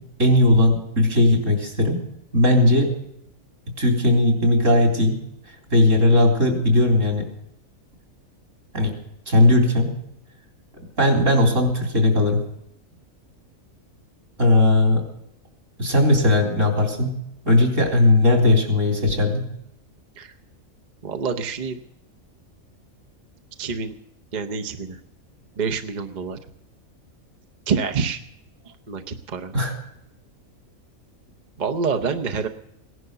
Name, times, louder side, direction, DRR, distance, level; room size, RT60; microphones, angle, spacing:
voice 1, 0.2-2.0 2.3-2.9 3.8-5.2 5.7-7.3 8.7-8.9 9.3-9.9 11.0-12.4 14.4-15.0 15.8-17.1 17.5-19.4 29.5-29.7, left 1 dB, 60° right, 3 dB, 4.2 m, -18 dB
voice 2, 21.0-21.8 23.6-23.9 24.3-25.0 25.6-26.4 27.7-28.2 28.7-29.5 31.6-32.5, right 5 dB, 40° right, 7 dB, 0.8 m, -27 dB
17.5 x 11.0 x 6.7 m, 0.78 s
omnidirectional pair, 1.5 m